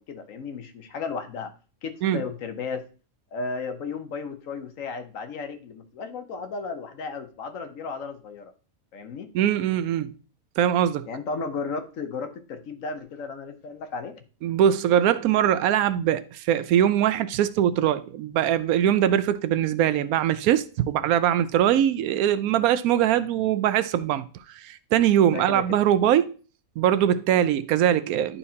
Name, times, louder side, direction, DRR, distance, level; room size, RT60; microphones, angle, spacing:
voice 1, 0.0-1.5 1.8-2.8 3.3-8.5 8.9-9.3 11.1-14.2 25.3-25.8, left 4 dB, 65° left, 1.2 m, -34 dB
voice 2, 9.3-10.1 10.6-11.1 14.4-24.3 24.5-26.3 26.8-28.4, right 10 dB, 90° right, 1.0 m, -22 dB
11.0 x 4.3 x 2.8 m
omnidirectional pair, 1.5 m